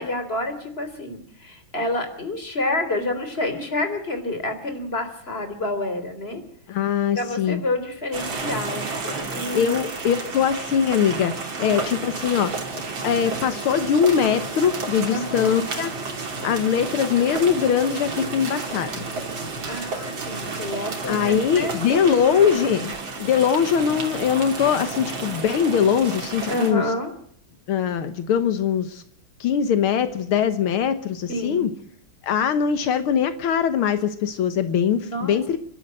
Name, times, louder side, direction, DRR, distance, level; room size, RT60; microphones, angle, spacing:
voice 1, 0.0-6.4 7.1-9.7 11.6-11.8 15.1-15.5 19.7-22.7 26.5-27.1 31.3-31.7 35.0-35.4, left 1 dB, 25° left, 8 dB, 3.7 m, -29 dB
voice 2, 6.7-7.6 9.0-9.2 9.5-11.3 11.6-12.6 13.0-15.9 16.4-19.0 21.1-22.9 23.2-26.8 27.7-29.0 29.4-31.7 32.2-35.6, left 8 dB, 80° left, 10 dB, 2.0 m, -22 dB
sound 1, 8.1-26.7, right 3 dB, 65° right, 3.7 m, -31 dB
30.0 x 12.5 x 7.7 m, 0.65 s
omnidirectional pair, 2.3 m